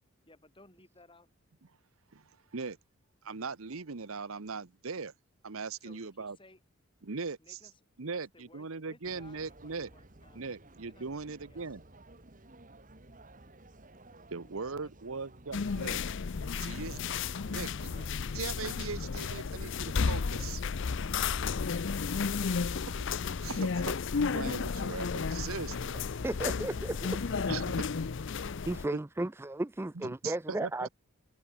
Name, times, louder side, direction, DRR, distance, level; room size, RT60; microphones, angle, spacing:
voice 1, 0.2-1.3 5.8-6.6 7.4-10.4 10.8-11.6 14.0-14.9, left 2 dB, 20° left, 6.5 m, -60 dB
voice 2, 2.1-2.8 3.2-5.1 5.4-6.4 7.0-7.6 8.0-9.9 10.3-11.8 14.3-16.0 16.5-17.0 17.5-17.9 18.3-20.6 23.4-24.0 24.3-25.9 27.5-27.9 28.9-29.0 29.9-30.9, right 4 dB, 70° right, 0.9 m, -39 dB
sound 1, 9.0-18.1, right 2 dB, 35° right, 1.8 m, -55 dB
sound 2, 15.5-28.8, left 5 dB, 55° left, 0.5 m, -33 dB
voice 3, 26.1-27.5 28.7-30.9, right 1 dB, 10° right, 0.4 m, -35 dB
head